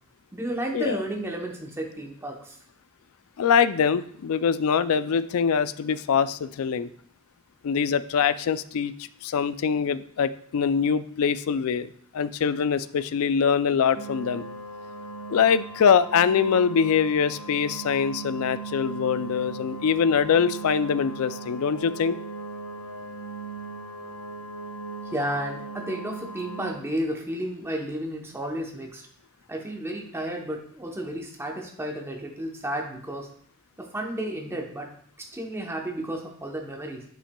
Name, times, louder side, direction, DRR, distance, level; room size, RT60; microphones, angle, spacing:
voice 1, 0.3-2.6 25.1-29.1 29.5-33.3 33.8-34.9 35.2-37.0, right 1 dB, 10° right, 1 dB, 0.8 m, -32 dB
voice 2, 3.4-6.9 7.6-11.9 12.1-14.4 15.3-22.2, left 6 dB, 70° left, 14 dB, 0.4 m, -23 dB
sound 1, 13.9-26.7, right 3 dB, 85° left, 1.1 m, -38 dB
9.9 x 5.7 x 2.2 m, 0.62 s
head